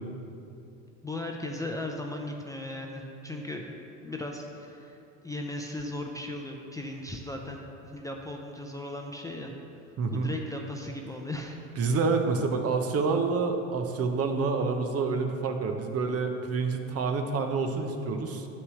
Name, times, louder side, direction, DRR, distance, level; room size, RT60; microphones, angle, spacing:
voice 1, 1.0-3.7 4.0-5.0 5.2-9.5 10.1-11.6, left 1 dB, 10° left, 1 dB, 0.5 m, -37 dB
voice 2, 10.0-10.3 11.8-18.5, right 4 dB, 40° right, 6 dB, 0.8 m, -28 dB
9.5 x 3.3 x 6.3 m, 2.8 s
hypercardioid pair, 80°, 39 cm